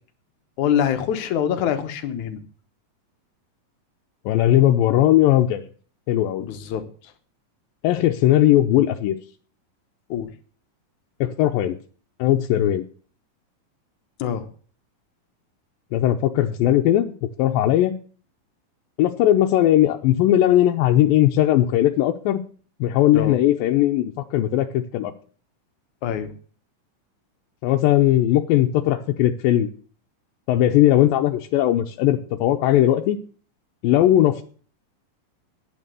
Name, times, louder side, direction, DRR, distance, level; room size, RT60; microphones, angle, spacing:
voice 1, 0.6-2.4 6.4-6.9 10.1-10.3 14.2-14.5 23.1-23.4 26.0-26.3, left 9 dB, 65° left, 8 dB, 2.4 m, -24 dB
voice 2, 4.3-5.6 6.1-6.4 7.8-9.2 11.2-11.8 12.2-12.8 15.9-17.1 17.4-17.9 19.0-22.4 22.8-25.1 27.6-29.7 30.5-33.2 33.8-34.4, left 13 dB, 90° left, 3 dB, 2.5 m, -18 dB
11.0 x 9.3 x 6.8 m, 0.43 s
omnidirectional pair, 4.0 m